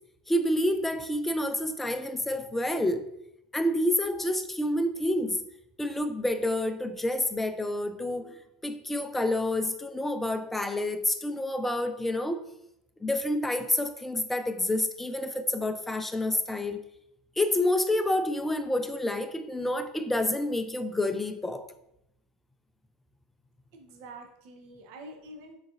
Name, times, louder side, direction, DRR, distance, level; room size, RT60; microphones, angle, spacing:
voice 1, 0.3-3.1 3.5-5.4 5.8-8.4 8.6-12.4 13.0-16.8 17.4-21.7, left 1 dB, 5° left, 0.3 m, -28 dB
voice 2, 23.7-25.6, right 2 dB, 60° right, 0.7 m, -46 dB
3.8 x 3.8 x 2.4 m
supercardioid pair, 125°, 3 cm